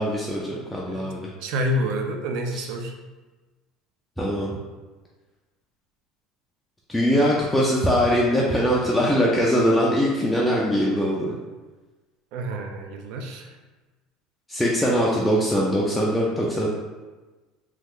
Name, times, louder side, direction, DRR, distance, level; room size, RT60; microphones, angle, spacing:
voice 1, 0.0-1.3 2.5-2.7 4.2-4.6 6.9-11.3 14.5-16.7, equal, 5° left, -5 dB, 0.3 m, -22 dB
voice 2, 1.4-2.9 12.3-13.5, equal, 60° right, 3 dB, 0.4 m, -28 dB
3.0 x 2.3 x 3.6 m, 1.2 s
cardioid pair, 155°, 0 cm